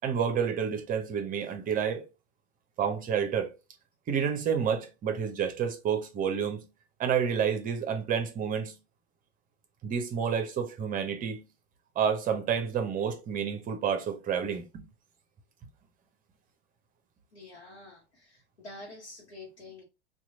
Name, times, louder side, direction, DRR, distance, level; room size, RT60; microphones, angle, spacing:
voice 1, 0.0-2.0 2.8-3.5 4.1-6.7 7.0-8.8 9.8-11.5 12.0-14.8, right 7 dB, 25° right, 0.7 m, -29 dB
voice 2, 17.3-19.8, left 2 dB, 75° left, 1.0 m, -47 dB
3.0 x 2.3 x 3.8 m
figure-of-eight pair, 80°, 33 cm